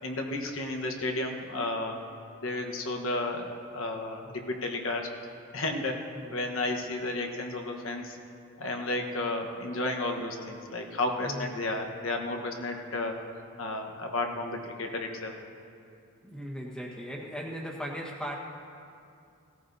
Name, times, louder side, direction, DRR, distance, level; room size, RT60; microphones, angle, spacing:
voice 1, 0.0-2.0 2.4-5.1 5.5-6.0 6.3-8.1 8.6-13.2 13.6-15.4, left 2 dB, 65° left, 2 dB, 1.2 m, -32 dB
voice 2, 6.1-6.5 11.2-11.6 16.2-18.3, equal, 5° left, -2 dB, 1.3 m, -38 dB
18.0 x 14.5 x 2.7 m, 2.5 s
head